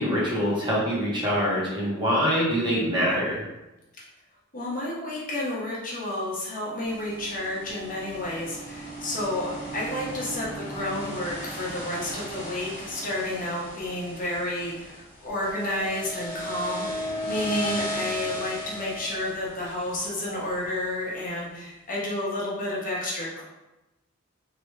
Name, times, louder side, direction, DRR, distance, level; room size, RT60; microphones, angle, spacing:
voice 1, 0.0-3.4, equal, 20° right, -7 dB, 1.0 m, -24 dB
voice 2, 4.5-23.4, left 1 dB, 40° left, -5 dB, 0.9 m, -31 dB
sound 1, 6.8-21.0, equal, 10° left, 1.3 m, -36 dB
3.1 x 2.9 x 3.2 m, 0.98 s
head